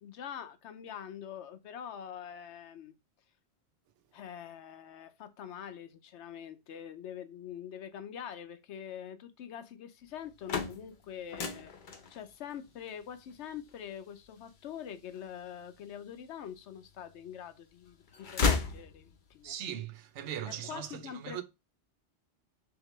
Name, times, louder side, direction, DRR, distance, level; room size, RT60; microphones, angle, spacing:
voice 1, 0.0-2.9 4.1-11.7 12.1-19.5 20.5-21.4, left 9 dB, 75° left, 0.9 m, -44 dB
sound 1, 10.2-16.1 16.7-17.5 17.8-19.4, left 5 dB, 50° left, 0.7 m, -35 dB
voice 2, 19.4-21.4, right 10 dB, 75° right, 0.9 m, -39 dB
3.9 x 3.1 x 3.0 m
omnidirectional pair, 1.2 m